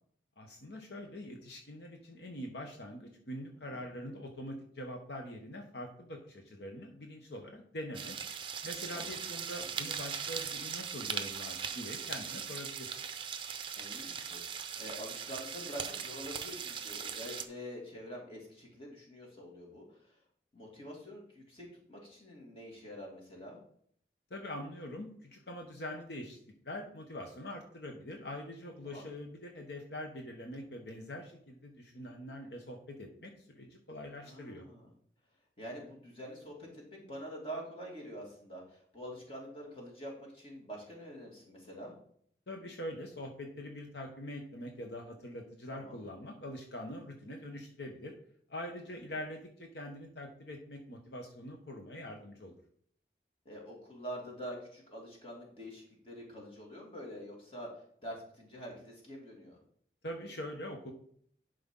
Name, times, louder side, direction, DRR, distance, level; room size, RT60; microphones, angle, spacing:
voice 1, 0.4-8.2 8.6-13.0 24.3-26.4 26.6-34.6 42.5-48.1 48.5-52.5 60.0-60.9, left 1 dB, 75° left, 2 dB, 1.1 m, -44 dB
sound 1, 7.9-17.5, right 7 dB, 30° right, 0.6 m, -40 dB
voice 2, 13.8-20.2 20.5-23.6 28.8-29.1 34.2-34.9 35.6-41.9 45.7-46.0 53.4-57.7 58.0-59.6, equal, 30° left, -2 dB, 2.6 m, -46 dB
11.0 x 5.2 x 3.8 m, 0.62 s
head